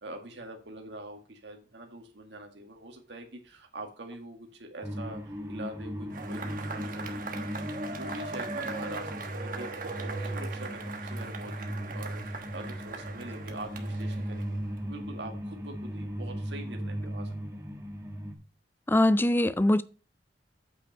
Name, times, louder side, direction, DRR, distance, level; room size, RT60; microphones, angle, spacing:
voice 1, 0.0-7.7 8.0-14.6 14.8-17.6, right 2 dB, 75° right, 2.0 m, -44 dB
sound 1, 4.8-18.3, equal, 15° right, 1.5 m, -37 dB
Cheering / Applause / Crowd, 6.1-14.8, right 4 dB, 50° right, 1.2 m, -40 dB
voice 2, 18.9-19.8, left 1 dB, 10° left, 0.4 m, -22 dB
8.4 x 5.6 x 5.4 m
head